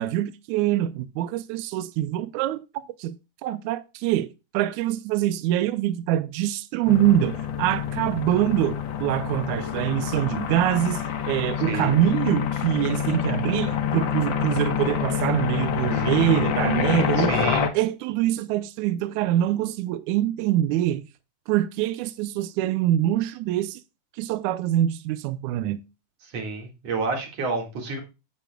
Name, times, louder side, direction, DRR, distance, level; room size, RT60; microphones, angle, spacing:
voice 1, 0.0-3.2 3.4-4.3 4.5-17.3 17.7-21.1 21.5-23.8 24.2-25.8, right 13 dB, 80° right, 2.0 m, -24 dB
sound 1, 6.9-17.7, left 9 dB, 80° left, 1.0 m, -27 dB
voice 2, 17.2-17.7 26.3-28.0, right 4 dB, 55° right, 2.9 m, -29 dB
9.8 x 8.3 x 2.3 m
omnidirectional pair, 3.5 m